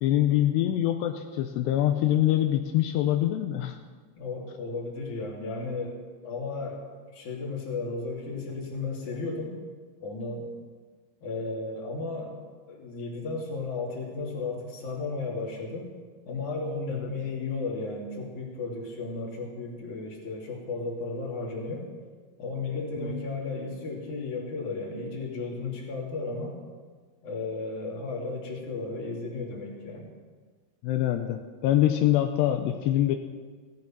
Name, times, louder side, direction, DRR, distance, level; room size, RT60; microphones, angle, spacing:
voice 1, 0.0-3.8 16.9-17.1 23.0-23.3 30.8-33.2, left 12 dB, 85° left, 5 dB, 2.8 m, -25 dB
voice 2, 4.2-6.8 7.1-9.6 10.0-10.5 11.2-12.4 12.7-15.9 16.3-21.9 22.4-26.6 27.2-30.1, left 3 dB, 50° left, -2 dB, 3.8 m, -34 dB
17.0 x 12.0 x 5.9 m, 1.5 s
omnidirectional pair, 4.9 m